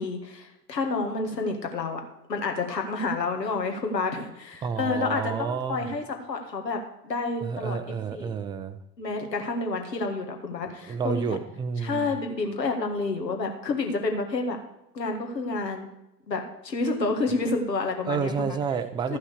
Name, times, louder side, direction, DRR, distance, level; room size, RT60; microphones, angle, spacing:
voice 1, 0.0-2.0 2.3-8.3 9.0-11.4 11.8-14.6 14.9-15.9 16.3-18.6 19.1-19.2, left 3 dB, 80° left, 4 dB, 2.0 m, -29 dB
voice 2, 4.6-5.9 7.4-8.8 10.9-12.1 18.1-19.2, right 6 dB, 10° right, 11 dB, 0.4 m, -30 dB
13.5 x 6.0 x 6.5 m, 0.88 s
figure-of-eight pair, 85°, 49 cm